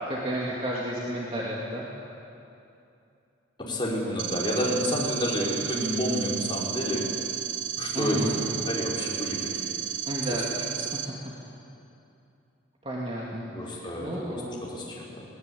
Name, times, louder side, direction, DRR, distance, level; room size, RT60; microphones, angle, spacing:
voice 1, 0.1-1.9 7.9-8.4 10.1-10.5 12.8-14.7, equal, 30° right, -4 dB, 2.5 m, -32 dB
voice 2, 3.6-7.0 7.8-9.8 10.3-10.4 13.5-14.4 14.7-15.1, left 1 dB, 25° left, -4 dB, 4.9 m, -30 dB
sound 1, 4.2-11.0, right 10 dB, 70° right, 1.5 m, -33 dB
21.5 x 19.0 x 8.6 m, 2.7 s
head